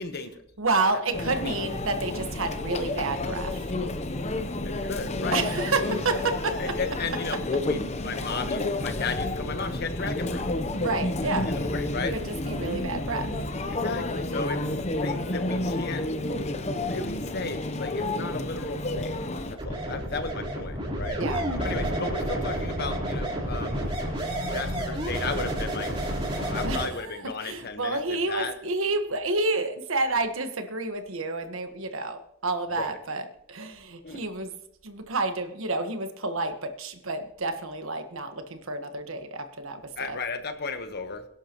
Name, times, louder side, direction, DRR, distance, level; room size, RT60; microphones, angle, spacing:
voice 1, 0.0-0.4 0.9-1.0 1.3-1.6 4.6-5.5 6.6-10.5 11.5-12.1 13.7-16.1 16.7-21.2 21.6-28.5 32.7-32.9 34.0-34.3 39.8-41.3, left 4 dB, 55° left, 8 dB, 1.2 m, -35 dB
voice 2, 0.6-3.6 5.3-6.6 10.8-11.5 12.1-13.3 21.1-21.5 26.6-26.8 27.4-33.2 33.5-34.5 34.8-39.8 40.1-40.2, right 3 dB, 85° right, 7 dB, 1.4 m, -29 dB
Conversation / Chatter / Crowd, 1.1-19.5, left 2 dB, 35° left, 0.8 m, -30 dB
sound 1, 19.6-26.9, right 1 dB, 25° right, 3.7 m, -30 dB
22.5 x 11.5 x 3.0 m, 0.73 s
head